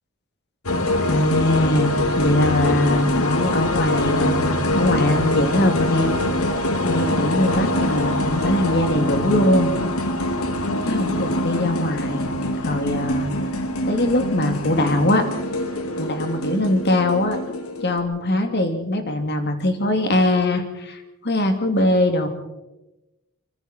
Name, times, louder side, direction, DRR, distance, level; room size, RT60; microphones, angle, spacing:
sound 1, 0.7-18.0, left 1 dB, 75° left, 2.2 m, -24 dB
voice 1, 1.0-6.2 6.8-9.8 10.8-12.3 12.6-13.3 13.9-15.3 16.0-17.4 17.8-22.3, left 1 dB, 50° left, 6 dB, 2.7 m, -21 dB
25.5 x 24.0 x 4.5 m, 0.99 s
head